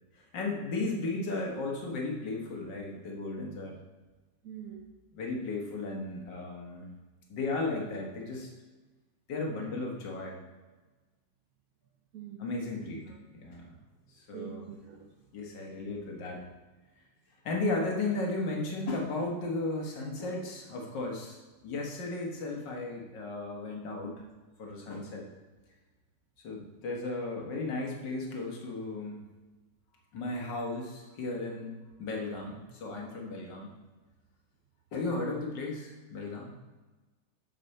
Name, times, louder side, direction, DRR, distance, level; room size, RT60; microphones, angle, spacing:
voice 1, 0.1-3.8 5.1-6.9 7.3-8.5 9.3-10.4 12.4-13.8 14.1-14.7 15.3-16.5 17.4-24.2 24.6-25.3 26.4-29.2 30.1-33.7 34.9-36.5, left 2 dB, 75° left, -1 dB, 2.1 m, -35 dB
voice 2, 4.4-4.9 12.1-12.4 12.9-13.2 14.3-15.1, right 9 dB, 60° right, 0 dB, 1.1 m, -44 dB
7.9 x 7.2 x 4.2 m, 1.2 s
omnidirectional pair, 1.9 m